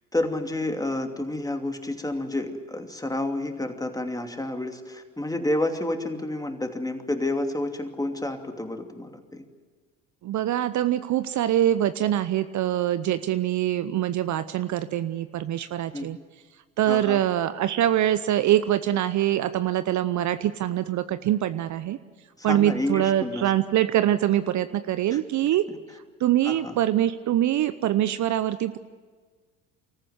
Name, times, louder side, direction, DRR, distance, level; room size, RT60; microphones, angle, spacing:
voice 1, 0.1-9.4 15.9-16.1 16.9-17.2 22.4-23.4 25.1-25.2 26.4-26.8, left 1 dB, 10° left, 5 dB, 2.7 m, -29 dB
voice 2, 10.2-16.2 16.8-22.0 22.4-25.7 26.2-28.8, right 12 dB, 50° right, 12 dB, 0.8 m, -24 dB
25.0 x 14.5 x 9.6 m, 1.4 s
hypercardioid pair, 60°, 38 cm